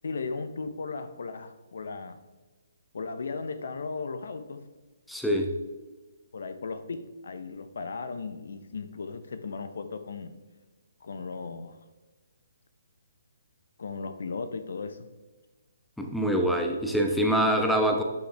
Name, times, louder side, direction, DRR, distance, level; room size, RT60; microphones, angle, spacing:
voice 1, 0.0-2.2 2.9-4.6 6.3-10.3 11.0-11.8 13.8-15.1, left 4 dB, 65° left, 10 dB, 0.7 m, -36 dB
voice 2, 5.1-5.5 16.0-18.0, equal, ahead, 2 dB, 0.9 m, -25 dB
11.5 x 5.3 x 3.4 m, 1.2 s
figure-of-eight pair, 140°, 0 cm